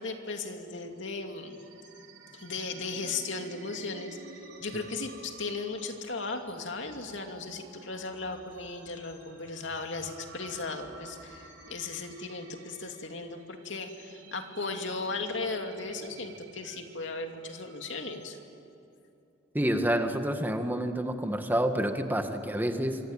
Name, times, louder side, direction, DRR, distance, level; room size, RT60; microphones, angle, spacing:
voice 1, 0.0-1.6 2.3-4.2 4.6-18.4, left 3 dB, 70° left, 4 dB, 2.7 m, -36 dB
sound 1, 0.8-18.1, right 3 dB, 75° right, 4.9 m, -52 dB
voice 2, 19.5-23.0, right 1 dB, 10° right, 6 dB, 1.8 m, -28 dB
27.0 x 24.5 x 9.1 m, 2.7 s
head